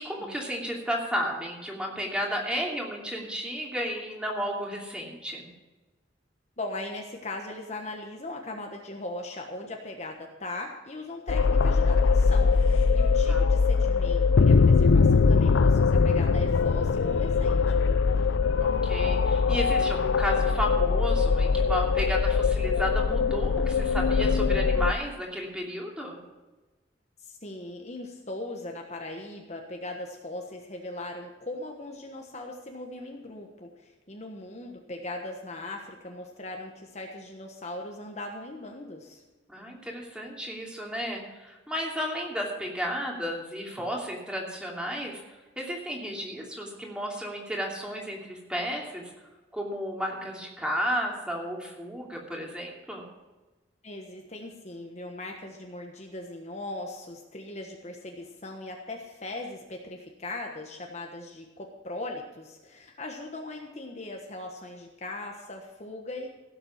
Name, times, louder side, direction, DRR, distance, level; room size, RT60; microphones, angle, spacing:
voice 1, 0.0-5.5 13.3-13.4 18.6-26.2 39.5-45.2 45.6-49.1 49.5-53.0, equal, 5° right, -1 dB, 2.7 m, -33 dB
voice 2, 6.6-17.7 27.2-39.2 53.8-66.3, left 2 dB, 35° left, 2 dB, 1.3 m, -39 dB
sound 1, 11.3-24.9, left 4 dB, 80° left, 0.5 m, -22 dB
16.5 x 7.8 x 5.8 m, 1.2 s
head